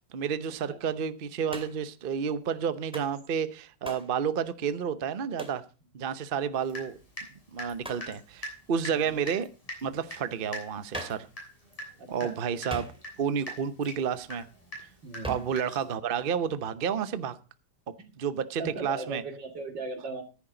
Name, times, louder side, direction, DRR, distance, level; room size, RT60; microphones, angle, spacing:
voice 1, 0.0-5.6 5.9-6.9 7.5-9.5 9.8-11.3 12.1-12.9 13.2-14.5 15.3-17.4 18.2-19.2, right 7 dB, 40° right, 0.9 m, -30 dB
Hands, 1.5-1.9 2.9-3.2 3.8-4.1 5.4-5.6 7.8-8.1 10.9-11.3 12.7-13.3 15.2-15.6, right 1 dB, 5° right, 2.2 m, -40 dB
Water tap faucet / Drip, 6.7-7.3 7.6-15.9, equal, 20° left, 6.5 m, -42 dB
voice 2, 12.0-12.4 15.0-15.4 18.0-18.1 18.6-20.2, right 2 dB, 90° right, 3.2 m, -38 dB
14.5 x 10.5 x 3.9 m
omnidirectional pair, 1.9 m